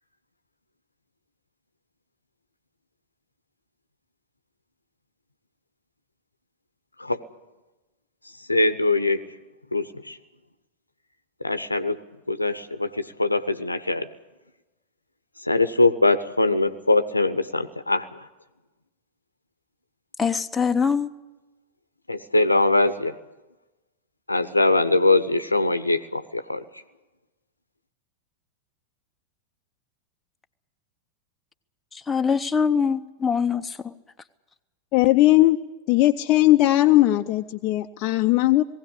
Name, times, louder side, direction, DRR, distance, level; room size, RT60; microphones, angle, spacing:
voice 1, 8.5-9.2 9.7-10.2 11.4-12.0 12.3-14.1 15.5-18.1 22.1-23.1 24.3-26.6, left 2 dB, 85° left, 13 dB, 0.9 m, -22 dB
voice 2, 20.2-21.1 32.1-33.6, left 6 dB, 10° left, 6 dB, 0.9 m, -23 dB
voice 3, 34.9-35.6 35.9-38.6, left 16 dB, 40° left, 5 dB, 0.6 m, -18 dB
19.5 x 16.5 x 10.0 m, 1.1 s
figure-of-eight pair, 90°, 0 cm